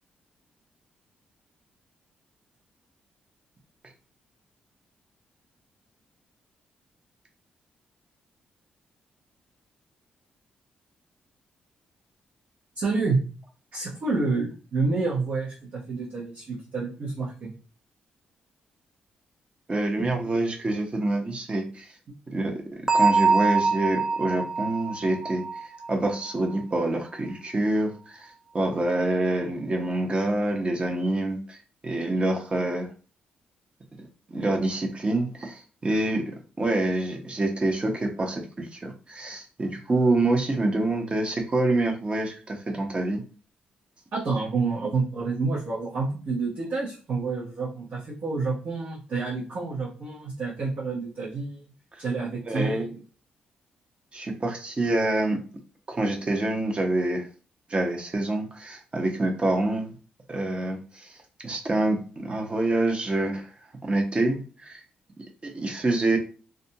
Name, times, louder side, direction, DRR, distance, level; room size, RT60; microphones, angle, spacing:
voice 1, 12.8-13.3 13.7-17.5 44.1-51.6 52.0-52.9, right 4 dB, 65° right, -6 dB, 0.9 m, -28 dB
voice 2, 19.7-21.9 22.3-22.6 22.9-28.3 28.5-31.6 31.8-32.9 34.3-43.2 52.5-52.9 54.1-55.4 55.9-57.3 57.7-59.9 60.3-61.2 61.4-63.5 63.8-64.8 65.4-66.2, right 2 dB, 35° right, 2 dB, 0.8 m, -26 dB
Bell, 22.9-26.5, right 4 dB, 15° right, 0.4 m, -24 dB
2.5 x 2.2 x 2.7 m, 0.37 s
cardioid pair, 65°, 3 cm